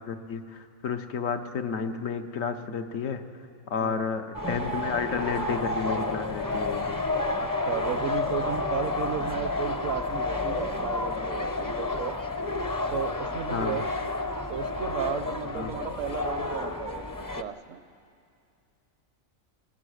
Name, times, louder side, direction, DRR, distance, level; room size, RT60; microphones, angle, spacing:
voice 1, 0.0-3.2 3.7-7.0 13.5-13.8 15.5-15.8, left 6 dB, 80° left, 6 dB, 1.4 m, -31 dB
sound 1, 4.3-17.4, left 2 dB, 20° left, 0.6 m, -30 dB
voice 2, 7.4-12.2 12.9-13.8 14.5-17.0 17.4-17.8, right 9 dB, 70° right, 13 dB, 1.0 m, -34 dB
24.5 x 21.0 x 6.5 m, 2.4 s
omnidirectional pair, 1.4 m